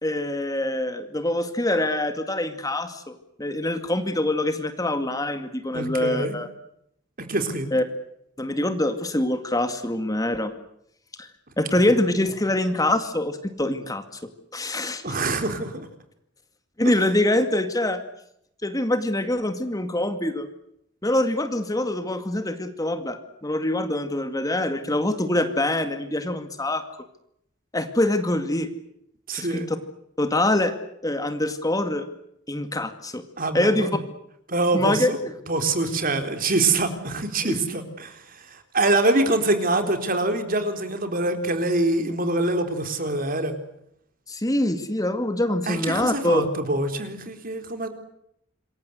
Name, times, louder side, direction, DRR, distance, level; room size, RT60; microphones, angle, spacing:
voice 1, 0.0-6.5 7.7-7.8 8.4-10.5 11.2-11.3 11.6-14.2 14.5-15.0 16.8-18.0 18.6-20.5 21.0-26.8 27.7-28.7 29.3-29.8 30.2-30.7 31.0-32.1 32.5-33.2 33.5-33.9 34.7-35.3 37.4-37.6 44.3-46.5, left 1 dB, 20° left, 8 dB, 2.2 m, -24 dB
voice 2, 5.7-6.3 7.2-7.7 11.8-11.9 15.0-15.9 29.3-29.7 33.4-33.9 34.5-35.2 35.5-38.2 38.5-43.5 45.7-47.9, right 2 dB, 50° right, 7 dB, 4.2 m, -24 dB
27.5 x 22.5 x 8.1 m, 0.76 s
head